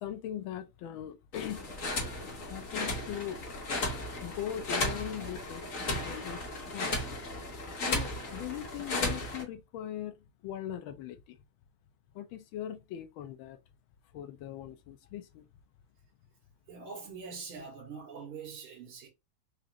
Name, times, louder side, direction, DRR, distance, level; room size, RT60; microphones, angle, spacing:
voice 1, 0.0-1.8 2.4-3.4 4.2-5.7 5.9-7.3 7.9-11.4 12.1-13.6 14.1-15.5, left 11 dB, 75° left, 1.3 m, -40 dB
sound 1, 1.3-9.4, left 2 dB, 45° left, 1.4 m, -35 dB
voice 2, 16.7-19.1, right 5 dB, 80° right, 2.2 m, -43 dB
4.9 x 2.6 x 2.9 m
omnidirectional pair, 2.3 m